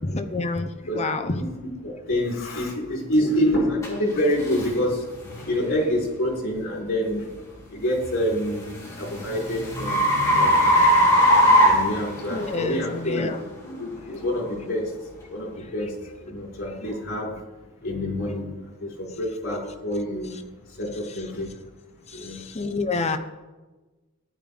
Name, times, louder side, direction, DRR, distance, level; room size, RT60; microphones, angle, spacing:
voice 1, 0.0-1.4 12.3-13.4 22.1-23.2, left 3 dB, 30° left, 7 dB, 0.8 m, -28 dB
voice 2, 0.9-1.3 1.8-5.0 5.5-7.3 7.7-8.7 9.0-10.1 10.3-10.6 11.6-13.3 13.6-14.8 15.3-15.9 16.2-17.3 17.8-18.5 18.8-20.4 20.8-21.5 22.1-22.4, equal, 60° left, -2 dB, 3.9 m, -27 dB
sound 1, 3.8-3.9 4.5-4.7 5.3-5.5 8.1-12.6, equal, 15° left, 3.4 m, -19 dB
14.0 x 11.0 x 3.5 m, 1.2 s
head